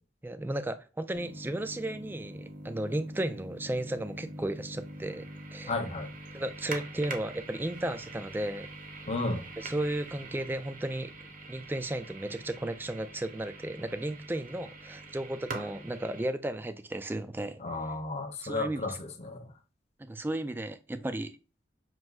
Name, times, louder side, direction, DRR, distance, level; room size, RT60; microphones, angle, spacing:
voice 1, 0.2-5.8 6.3-8.7 9.6-11.1 11.5-17.9 18.4-19.0 20.0-21.3, right 1 dB, 10° right, 0.3 m, -34 dB
sound 1, 1.1-16.3, right 2 dB, 50° right, 0.8 m, -44 dB
voice 2, 5.7-6.1 9.1-9.4 17.6-19.5, left 2 dB, 35° left, 0.7 m, -33 dB
5.9 x 2.7 x 2.3 m
head